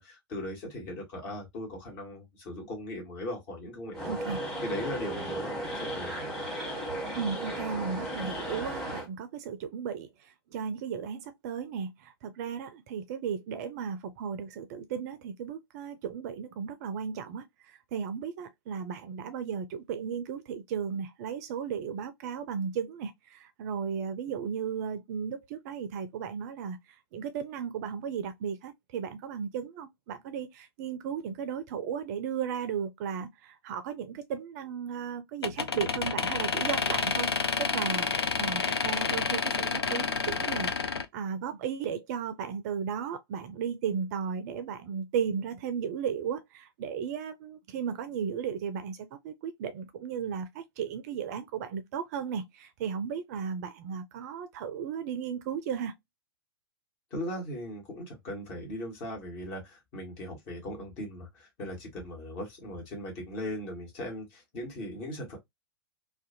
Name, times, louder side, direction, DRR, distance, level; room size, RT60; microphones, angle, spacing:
voice 1, 0.0-4.2 4.6-6.2 57.1-65.4, left 1 dB, 40° left, 1.2 m, -38 dB
sound 1, 3.9-9.1, right 1 dB, 5° left, 1.1 m, -35 dB
voice 2, 4.0-4.4 7.2-10.1 10.5-26.8 27.1-37.3 37.6-38.1 38.4-55.9, right 7 dB, 40° right, 0.4 m, -35 dB
sound 2, 35.4-41.0, left 5 dB, 80° left, 0.4 m, -29 dB
2.5 x 2.2 x 2.6 m
figure-of-eight pair, 100°, 13 cm